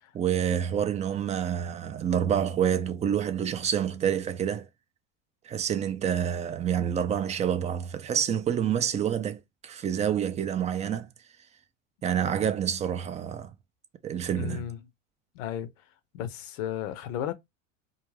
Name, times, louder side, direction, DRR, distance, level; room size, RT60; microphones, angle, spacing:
voice 1, 0.1-4.7 5.4-11.1 12.0-13.5 14.0-14.7, right 9 dB, 20° right, 0.3 m, -28 dB
voice 2, 14.3-14.8 15.3-15.7 16.1-17.3, left 10 dB, 75° left, 0.7 m, -34 dB
2.4 x 2.1 x 3.1 m
hypercardioid pair, 95°, 38 cm